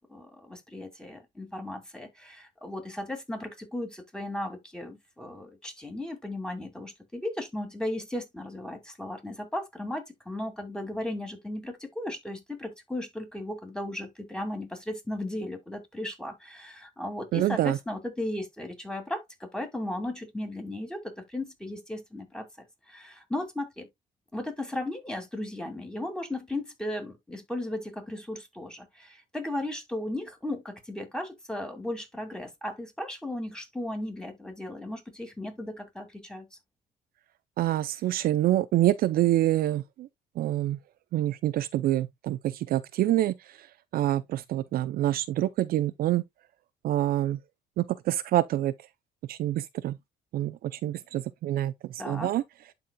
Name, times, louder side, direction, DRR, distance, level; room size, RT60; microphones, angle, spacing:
voice 1, 0.1-23.9 24.3-36.5 52.0-52.3, left 1 dB, 5° left, 2.3 m, -36 dB
voice 2, 17.3-17.8 37.6-40.1 40.4-40.8 41.1-43.7 43.9-46.2 46.8-47.4 47.8-48.7 49.3-50.0 50.3-52.4, right 14 dB, 60° right, 0.5 m, -26 dB
11.5 x 4.2 x 2.2 m
cardioid pair, 110°, 17 cm